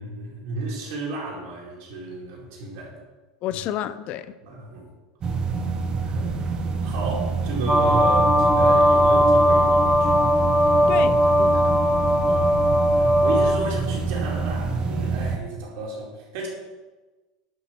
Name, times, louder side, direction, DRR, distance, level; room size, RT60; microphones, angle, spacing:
voice 1, 0.0-3.0 3.5-3.6 4.4-4.9 6.0-6.5 6.8-10.2 10.7-11.0 12.9-16.5, right 2 dB, 65° right, 4.5 m, -32 dB
voice 2, 3.4-4.3 10.9-11.8 12.3-12.5, left 11 dB, 50° left, 0.7 m, -31 dB
sound 1, 5.2-15.4, right 4 dB, 30° right, 1.3 m, -27 dB
sound 2, 7.7-13.6, equal, 5° right, 1.4 m, -18 dB
11.0 x 7.3 x 6.3 m
supercardioid pair, 115°, 3 cm